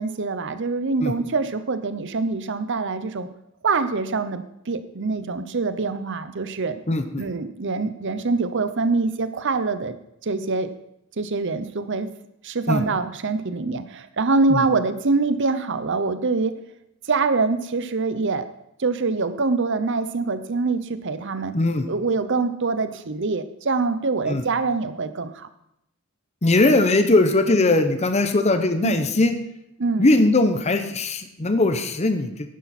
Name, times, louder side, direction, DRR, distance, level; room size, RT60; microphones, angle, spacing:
voice 1, 0.0-3.3 3.6-6.8 7.2-10.0 10.2-10.7 11.2-12.1 12.4-16.5 17.1-18.5 18.8-21.5 21.9-25.5 28.8-29.0 29.8-30.1, right 3 dB, 55° right, 11 dB, 0.8 m, -24 dB
voice 2, 6.9-7.3 12.7-12.8 14.5-14.7 21.5-21.8 24.3-24.4 26.4-29.3 30.0-32.5, left 2 dB, 30° left, 8 dB, 0.8 m, -20 dB
11.0 x 10.0 x 4.2 m, 0.80 s
head